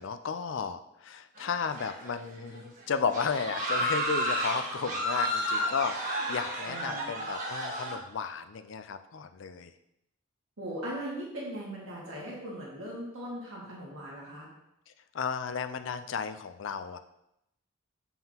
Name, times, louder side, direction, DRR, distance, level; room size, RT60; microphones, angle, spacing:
voice 1, 0.0-9.7 15.1-17.0, left 6 dB, 70° left, 10 dB, 0.4 m, -34 dB
sound 1, 1.4-2.2 2.5-2.7 3.1-8.0, equal, 40° right, 1.3 m, -32 dB
voice 2, 6.6-7.1 10.6-14.5, right 1 dB, 85° right, -6 dB, 1.8 m, -39 dB
7.6 x 5.5 x 2.9 m, 0.82 s
head